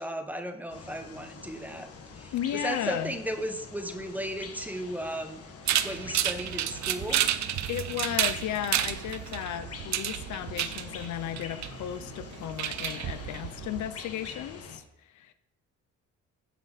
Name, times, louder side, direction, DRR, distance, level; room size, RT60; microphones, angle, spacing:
voice 1, 0.0-1.9 2.2-5.4 5.8-7.2, equal, 5° right, 7 dB, 1.2 m, -35 dB
sound 1, 0.7-14.8, left 5 dB, 50° left, 1.5 m, -45 dB
voice 2, 2.3-3.1 7.7-15.3, left 11 dB, 75° left, 12 dB, 0.6 m, -35 dB
sound 2, 5.7-13.9, right 11 dB, 65° right, 0.6 m, -31 dB
15.5 x 5.5 x 4.0 m, 0.86 s
cardioid pair, 90°, 30 cm